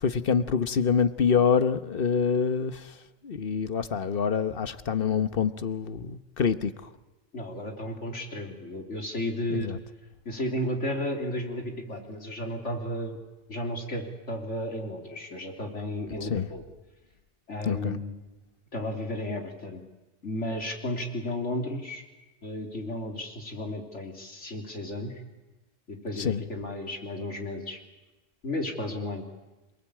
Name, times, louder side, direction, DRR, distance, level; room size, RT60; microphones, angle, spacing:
voice 1, 0.0-2.9 3.2-6.9 9.5-9.8 16.2-16.5 17.6-18.0 26.2-26.4, left 6 dB, 50° left, 1.2 m, -26 dB
voice 2, 7.3-9.7 10.3-13.2 13.5-16.6 17.5-18.1 18.7-19.8 20.2-22.0 22.4-25.1 25.9-27.8 28.4-29.2, left 1 dB, 75° left, 3.9 m, -33 dB
28.0 x 19.5 x 8.8 m
omnidirectional pair, 1.2 m